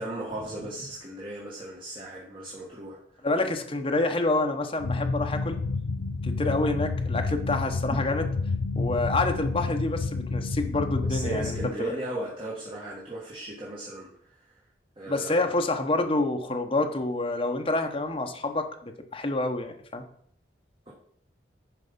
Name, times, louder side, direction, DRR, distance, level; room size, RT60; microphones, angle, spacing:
voice 1, 0.0-3.0 11.1-14.1 15.0-15.4 20.9-21.0, right 2 dB, 30° right, -4 dB, 1.5 m, -36 dB
voice 2, 3.2-5.6 6.2-8.3 8.8-11.9 15.1-20.0, left 2 dB, 30° left, 4 dB, 0.9 m, -28 dB
sound 1, 4.8-11.7, left 3 dB, 85° left, 0.5 m, -29 dB
10.5 x 4.8 x 5.3 m, 0.66 s
head